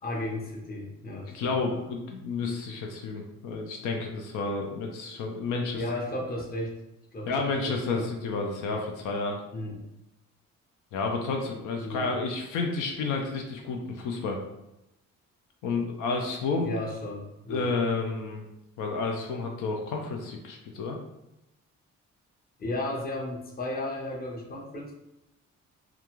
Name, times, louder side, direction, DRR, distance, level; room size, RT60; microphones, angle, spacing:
voice 1, 0.0-1.8 5.7-6.7 7.1-8.1 9.5-9.8 11.8-12.1 16.6-17.7 22.6-25.0, left 1 dB, 30° left, 0 dB, 0.7 m, -34 dB
voice 2, 1.3-5.8 7.3-9.4 10.9-14.4 15.6-16.7 17.5-18.4 18.8-21.0, left 4 dB, 85° left, 2 dB, 0.5 m, -30 dB
2.4 x 2.2 x 2.9 m, 0.89 s
cardioid pair, 90°, 30 cm